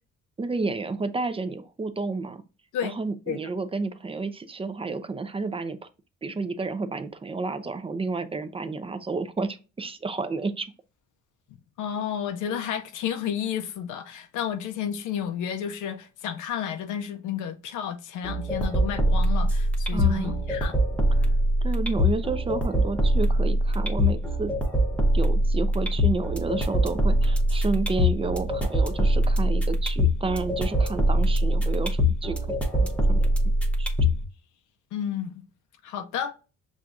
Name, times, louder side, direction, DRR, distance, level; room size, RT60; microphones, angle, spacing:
voice 1, 0.4-2.4 2.8-5.9 6.2-10.7 19.9-20.3 21.2-21.3 21.6-24.5 25.1-33.3 33.8-33.9, right 3 dB, 20° right, 0.4 m, -30 dB
voice 2, 11.8-20.7 34.9-35.4 35.8-36.4, left 9 dB, 85° left, 0.5 m, -31 dB
sound 1, 18.2-34.2, equal, 5° left, 0.9 m, -23 dB
6.1 x 2.3 x 2.5 m
cardioid pair, 90°, 30 cm